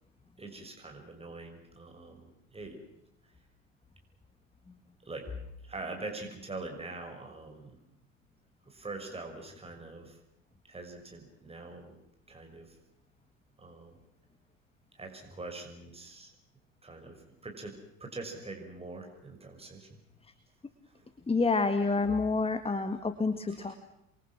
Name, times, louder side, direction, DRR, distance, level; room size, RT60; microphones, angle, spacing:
voice 1, 0.4-2.8 5.0-5.4 5.6-7.8 8.7-10.2 10.7-12.0 12.3-12.8 13.6-14.0 14.9-16.3 16.8-20.0 20.9-21.1 23.5-23.7, right 3 dB, 15° right, 3 dB, 5.9 m, -44 dB
voice 2, 21.3-23.8, left 3 dB, 15° left, 10 dB, 1.9 m, -28 dB
29.0 x 23.5 x 6.2 m, 0.81 s
figure-of-eight pair, 70°, 40 cm